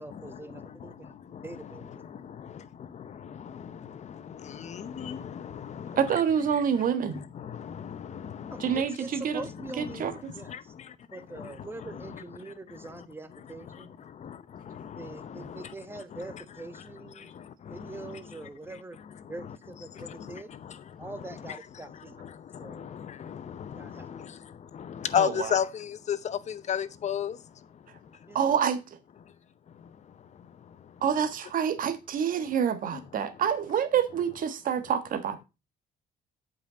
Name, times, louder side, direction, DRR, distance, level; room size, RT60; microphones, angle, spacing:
voice 1, 0.0-1.1 1.4-1.9 8.5-10.5 11.1-14.0 15.0-17.3 17.7-19.0 19.3-20.5 21.0-22.1 22.6-22.9 23.8-24.1 28.3-28.5, right 2 dB, 15° right, 1.2 m, -43 dB
voice 2, 1.3-1.7 2.4-2.5 3.3-3.7 4.4-6.1 7.1-8.9 9.4-10.0 10.5-10.6 11.4-11.5 11.8-12.2 14.2-14.4 14.7-15.7 17.8-18.2 20.0-20.3 21.1-21.6 22.2-22.3 22.7-24.3 24.7-27.4 32.9-33.0, left 9 dB, 45° left, 0.8 m, -34 dB
voice 3, 5.9-7.2 8.6-9.4 9.7-10.3 15.4-15.5 25.2-25.5 28.3-28.8 31.0-35.4, right 8 dB, 55° right, 1.3 m, -27 dB
8.0 x 5.7 x 5.0 m
cardioid pair, 110°, 17 cm